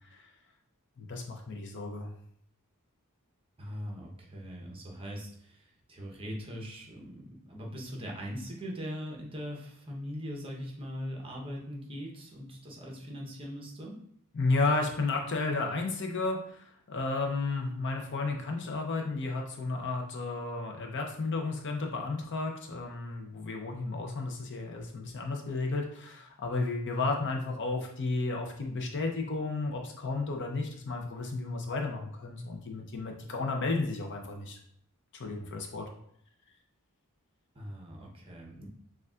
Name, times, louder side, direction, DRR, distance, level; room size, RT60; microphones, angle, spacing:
voice 1, 1.0-2.1 14.3-34.6 35.1-35.9, left 3 dB, 55° left, 2 dB, 0.6 m, -33 dB
voice 2, 3.6-14.0 37.5-38.7, equal, 25° right, -1 dB, 0.9 m, -41 dB
6.6 x 2.4 x 2.4 m, 0.67 s
head